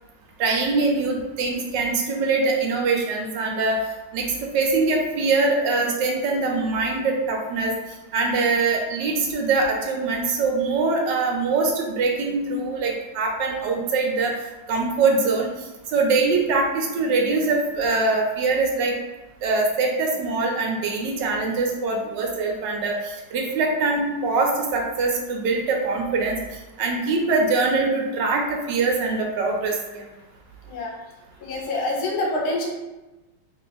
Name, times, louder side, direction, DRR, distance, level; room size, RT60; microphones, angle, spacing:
voice 1, 0.4-3.8 4.1-7.7 8.1-14.4 14.7-15.5 15.9-18.9 19.4-26.4 26.8-30.0, right 3 dB, 75° right, 1 dB, 1.2 m, -23 dB
voice 2, 31.4-32.7, left 2 dB, 60° left, -2 dB, 1.2 m, -26 dB
3.0 x 2.4 x 4.0 m, 1.1 s
omnidirectional pair, 2.0 m